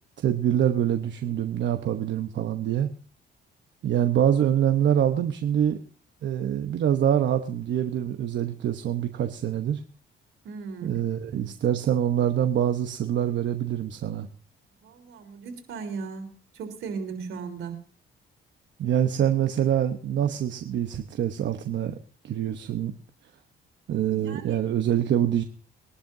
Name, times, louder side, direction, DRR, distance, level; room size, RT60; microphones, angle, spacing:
voice 1, 0.2-2.9 3.8-5.8 6.2-9.8 10.8-14.3 18.8-21.9 22.2-22.9 23.9-25.4, right 10 dB, 65° right, 6 dB, 1.0 m, -25 dB
voice 2, 10.4-11.2 14.8-17.8 24.1-24.6, right 5 dB, 85° right, 5 dB, 3.7 m, -37 dB
23.0 x 11.5 x 2.7 m, 0.41 s
cardioid pair, 90°, 20 cm